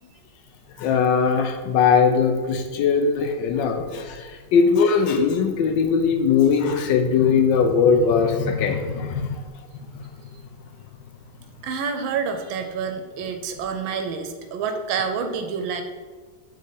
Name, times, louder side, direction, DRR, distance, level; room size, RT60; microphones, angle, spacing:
voice 1, 0.8-9.4, left 6 dB, 75° left, 6 dB, 1.2 m, -20 dB
voice 2, 11.6-15.8, right 6 dB, 90° right, 7 dB, 1.4 m, -28 dB
6.6 x 3.5 x 4.0 m, 1.4 s
omnidirectional pair, 2.1 m